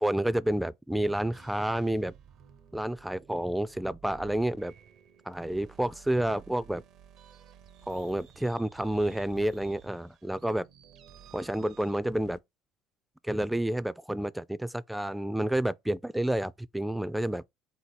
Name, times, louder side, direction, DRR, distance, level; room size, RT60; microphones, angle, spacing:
voice 1, 0.0-2.1 2.7-4.7 5.3-6.8 7.9-10.7 11.3-12.4 13.2-17.4, right 1 dB, 5° right, 0.4 m, -29 dB
sound 1, 1.3-12.4, right 8 dB, 60° right, 0.5 m, -54 dB
3.8 x 2.8 x 4.6 m
hypercardioid pair, 75°, 0 cm